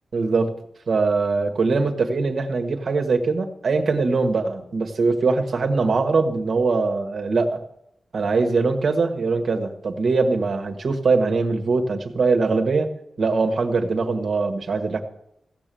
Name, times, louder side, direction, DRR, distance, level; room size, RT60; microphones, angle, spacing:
voice 1, 0.1-0.5 0.9-7.6 8.1-12.9 13.2-15.0, right 4 dB, 70° right, 6 dB, 1.5 m, -22 dB
16.0 x 6.9 x 7.7 m, 0.81 s
cardioid pair, 80°, 0 cm